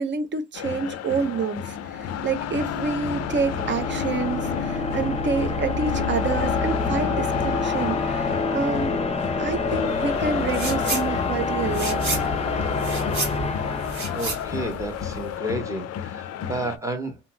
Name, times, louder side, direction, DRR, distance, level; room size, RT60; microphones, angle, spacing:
voice 1, 0.0-9.0 9.4-12.2, right 5 dB, 40° right, 0.6 m, -28 dB
sound 1, 0.5-16.8, left 10 dB, 55° left, 0.4 m, -33 dB
sound 2, 1.6-14.7, left 4 dB, 20° left, 0.7 m, -27 dB
sound 3, 10.5-11.1 11.4-15.3, right 3 dB, 65° right, 1.8 m, -31 dB
voice 2, 13.4-13.7 14.0-17.2, right 1 dB, 10° right, 1.0 m, -32 dB
2.8 x 2.8 x 2.2 m
cardioid pair, 90°, 30 cm